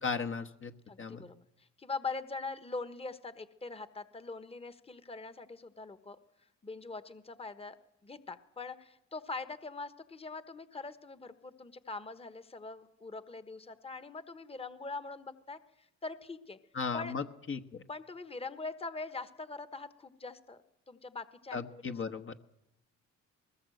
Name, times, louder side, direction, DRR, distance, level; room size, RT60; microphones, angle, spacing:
voice 1, 0.0-1.3 16.7-17.8 21.5-22.3, left 5 dB, 40° left, 6 dB, 1.2 m, -36 dB
voice 2, 0.9-6.2 6.6-7.8 8.0-16.6 16.9-17.1 17.9-20.6 20.9-22.2, left 3 dB, 20° left, 11 dB, 1.2 m, -43 dB
20.5 x 19.0 x 7.8 m, 0.87 s
cardioid pair, 90°, 30 cm